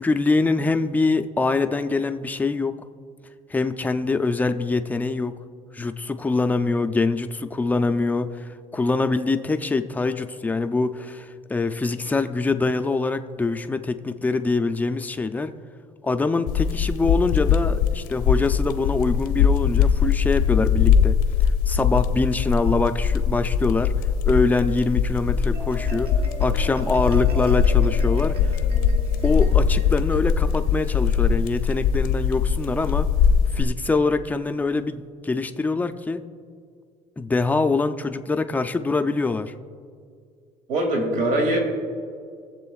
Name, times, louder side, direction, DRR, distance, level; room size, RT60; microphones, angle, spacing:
voice 1, 0.0-2.8 3.5-5.4 5.7-15.5 16.0-21.2 21.7-23.9 24.2-26.1 26.4-28.5 29.2-33.1 33.5-36.2 37.2-39.5, left 3 dB, 10° left, 8 dB, 0.4 m, -24 dB
sound 1, 16.5-33.6, left 7 dB, 85° left, 0.7 m, -21 dB
Marimba xylophone, 25.3-31.9, right 3 dB, 40° right, 0.9 m, -38 dB
voice 2, 40.7-41.6, right 1 dB, 70° right, 1 dB, 2.5 m, -22 dB
21.5 x 7.5 x 2.4 m, 2.2 s
cardioid pair, 150°, 14 cm